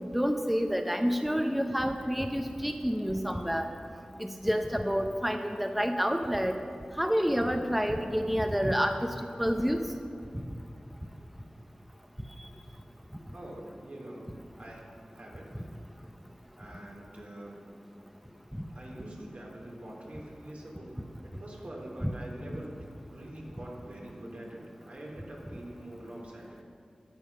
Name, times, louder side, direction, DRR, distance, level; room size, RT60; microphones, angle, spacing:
voice 1, 0.1-3.7 4.2-6.5 7.0-9.1 9.4-9.8 22.0-22.1, equal, 5° right, 5 dB, 0.7 m, -28 dB
voice 2, 13.3-14.3 14.6-14.8 15.1-15.4 16.6-17.6 18.7-22.7 23.1-26.6, right 1 dB, 65° right, -3 dB, 3.1 m, -44 dB
13.5 x 9.2 x 5.4 m, 2.4 s
cardioid pair, 45°, 3 cm